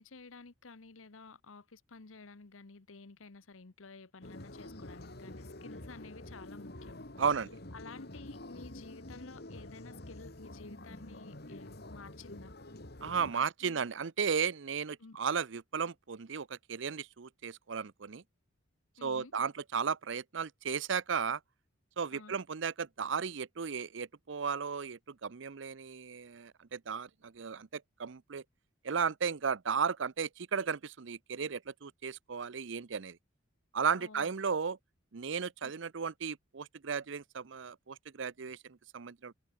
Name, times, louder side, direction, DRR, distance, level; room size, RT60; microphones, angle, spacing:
voice 1, 0.0-7.1 7.7-12.5 13.3-13.8 15.0-15.2 19.0-19.3 22.1-22.4 34.0-34.3 35.6-35.7, left 4 dB, 85° left, 1.1 m, -52 dB
sound 1, 4.2-13.3, left 1 dB, 55° left, 2.8 m, -48 dB
voice 2, 7.2-7.5 13.0-18.2 19.0-21.4 22.0-28.4 28.8-33.2 33.7-34.8 35.1-38.6 38.9-39.3, right 6 dB, 65° right, 0.6 m, -35 dB
head